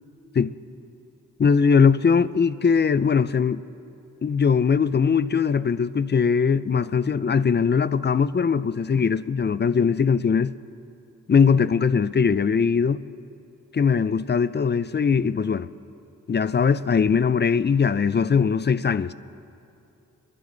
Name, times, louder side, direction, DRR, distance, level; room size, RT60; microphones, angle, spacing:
voice 1, 1.4-3.6 4.2-10.5 11.3-13.0 13.7-15.7 16.3-19.1, left 6 dB, 35° left, 0.4 m, -20 dB
27.0 x 11.0 x 3.9 m
cardioid pair, 70°, 33 cm